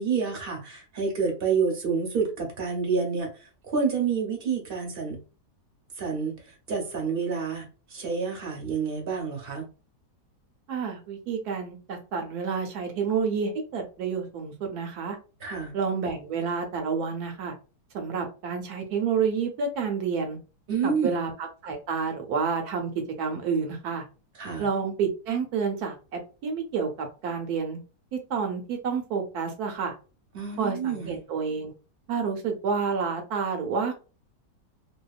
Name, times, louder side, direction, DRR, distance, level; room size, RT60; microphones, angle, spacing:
voice 1, 0.0-3.3 3.7-5.2 6.0-9.7 15.4-15.7 20.7-21.1 24.4-24.7 30.3-31.2, right 5 dB, 45° right, 1 dB, 0.8 m, -28 dB
voice 2, 10.7-15.2 15.7-17.5 17.9-20.4 20.8-22.9 23.2-24.0 24.6-26.9 27.2-27.8 28.1-29.9 30.6-31.7 32.1-33.9, right 5 dB, 70° right, 4 dB, 1.1 m, -29 dB
2.8 x 2.3 x 2.3 m, 0.33 s
omnidirectional pair, 1.8 m